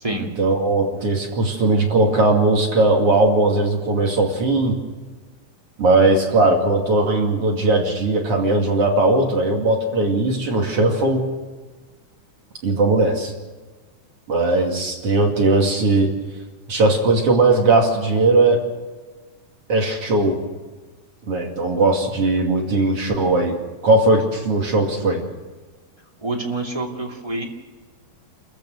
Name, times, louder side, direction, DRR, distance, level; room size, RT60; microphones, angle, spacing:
voice 1, 0.4-4.8 5.8-11.3 12.6-13.3 14.3-16.1 16.7-18.6 19.7-20.4 21.3-23.6 23.8-25.2, right 2 dB, 40° right, 1 dB, 3.0 m, -18 dB
voice 2, 26.2-27.4, right 2 dB, 10° right, 0 dB, 1.7 m, -27 dB
28.5 x 15.0 x 6.5 m, 1.4 s
omnidirectional pair, 4.7 m